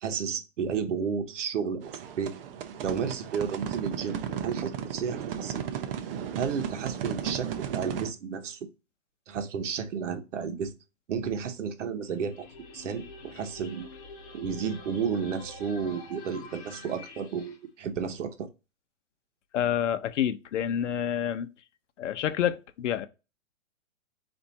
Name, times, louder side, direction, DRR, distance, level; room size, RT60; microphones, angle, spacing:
voice 1, 0.0-2.3 2.8-5.6 6.3-8.6 9.3-10.8 11.1-12.5 12.7-13.9 14.3-18.5, right 6 dB, 75° right, 1.1 m, -32 dB
sound 1, 1.8-8.1, right 8 dB, 50° right, 0.7 m, -35 dB
sound 2, 12.1-17.6, left 3 dB, 30° left, 0.9 m, -47 dB
voice 2, 19.5-21.5 22.0-23.1, left 10 dB, 70° left, 0.8 m, -28 dB
4.5 x 2.6 x 4.0 m
hypercardioid pair, 155°, 37 cm